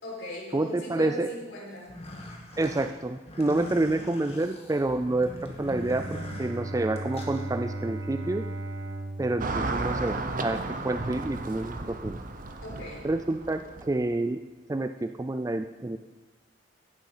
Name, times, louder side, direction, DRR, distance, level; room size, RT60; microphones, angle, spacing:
voice 1, 0.0-1.9 12.6-13.1, left 1 dB, 75° left, -5 dB, 4.9 m, -39 dB
voice 2, 0.5-1.3 2.6-8.5 9.2-10.6 10.8-12.2 13.0-14.4 14.7-16.0, right 2 dB, 15° right, 8 dB, 0.3 m, -28 dB
sound 1, 1.8-7.4, left 1 dB, 30° left, 1.7 m, -42 dB
Bowed string instrument, 5.6-10.6, right 2 dB, 85° right, 1.4 m, -37 dB
Car passing by / Traffic noise roadway noise, 9.4-14.0, right 2 dB, 45° right, 0.9 m, -33 dB
15.5 x 7.3 x 5.5 m, 1.2 s
head